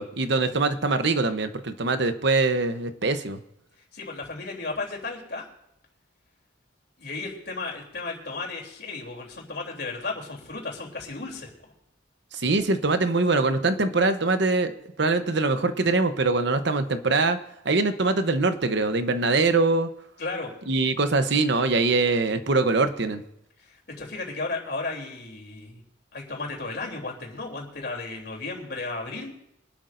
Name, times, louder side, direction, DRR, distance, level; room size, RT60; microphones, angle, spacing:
voice 1, 0.0-3.4 12.3-14.7 15.0-17.4 17.6-19.9 20.7-23.2, right 3 dB, 65° right, 9 dB, 0.9 m, -23 dB
voice 2, 3.9-5.4 7.0-11.5 20.2-20.5 23.7-25.8 26.1-29.3, left 3 dB, 55° left, 0 dB, 3.4 m, -34 dB
24.0 x 12.0 x 2.6 m, 0.78 s
head